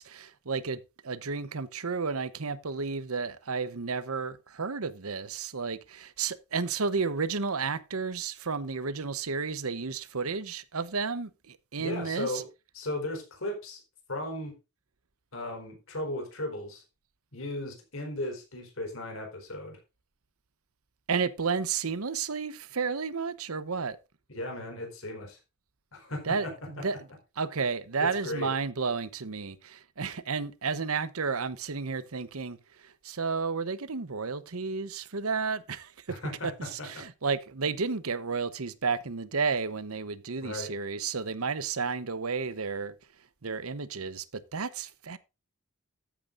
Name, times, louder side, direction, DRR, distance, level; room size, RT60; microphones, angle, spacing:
voice 1, 0.0-12.4 21.1-24.0 26.2-27.1 27.4-32.6 32.8-42.9 43.4-45.2, right 5 dB, 90° right, 1.0 m, -32 dB
voice 2, 11.8-12.5 12.7-13.8 14.1-14.6 15.3-16.8 17.3-19.8 24.3-25.4 25.9-26.9 28.0-28.5 36.1-37.1 40.4-40.7, left 1 dB, 65° left, 4.4 m, -36 dB
13.5 x 9.0 x 2.6 m
head